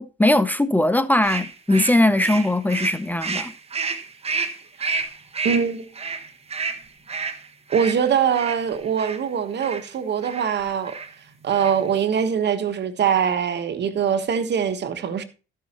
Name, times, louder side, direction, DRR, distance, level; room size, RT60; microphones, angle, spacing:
voice 1, 0.0-3.5, left 1 dB, 10° left, 0.6 m, -20 dB
sound 1, 1.2-9.2 9.6-9.9 10.2-10.5 10.8-11.1 11.4-11.9, right 4 dB, 30° right, 1.3 m, -30 dB
voice 2, 5.4-5.8 7.7-11.0 11.4-15.2, right 7 dB, 60° right, 1.4 m, -23 dB
13.5 x 5.6 x 4.3 m
cardioid pair, 90°, 20 cm